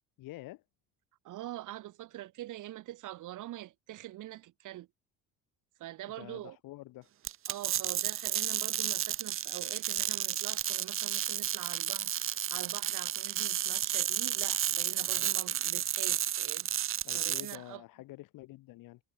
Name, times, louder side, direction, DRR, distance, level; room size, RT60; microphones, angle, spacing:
voice 1, 0.2-0.6 6.2-7.1 15.1-15.3 17.0-19.0, left 18 dB, 65° left, 4.5 m, -48 dB
voice 2, 1.2-4.9 5.8-6.6 7.5-16.7 17.1-17.8, right 15 dB, 60° right, 5.3 m, -44 dB
sound 1, 7.2-17.6, right 11 dB, 35° right, 1.0 m, -32 dB
cardioid pair, 135°, 35 cm